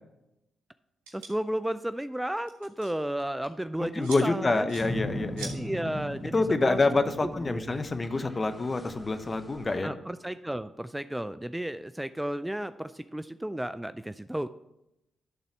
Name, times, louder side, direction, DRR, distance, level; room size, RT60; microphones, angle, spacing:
voice 1, 1.1-4.6 5.5-6.8 7.2-7.8 9.8-14.5, right 1 dB, 10° right, 12 dB, 0.4 m, -33 dB
sound 1, 1.1-1.3 2.3-2.9 3.2-3.5 4.0-4.2 4.7-4.9 5.4-5.5, right 4 dB, 90° right, 1.5 m, -41 dB
voice 2, 3.8-5.5 6.3-9.9, left 3 dB, 35° left, 9 dB, 1.0 m, -27 dB
sound 2, 4.8-9.8, equal, 10° left, 1.9 m, -39 dB
12.0 x 4.1 x 6.1 m, 0.89 s
hypercardioid pair, 40°, 0 cm